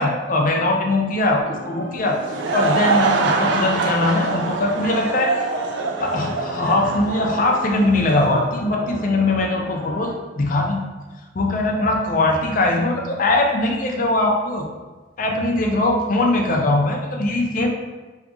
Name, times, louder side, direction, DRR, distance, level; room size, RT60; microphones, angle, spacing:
voice 1, 0.0-2.2 2.5-5.4 6.0-10.8 11.3-14.7 15.2-17.7, left 2 dB, 45° left, 1 dB, 0.4 m, -21 dB
sound 1, 1.4-10.1, equal, 75° left, 0.9 m, -36 dB
Laughter / Crowd, 2.0-8.3, right 4 dB, 70° right, 0.4 m, -24 dB
2.8 x 2.3 x 3.7 m, 1.3 s
head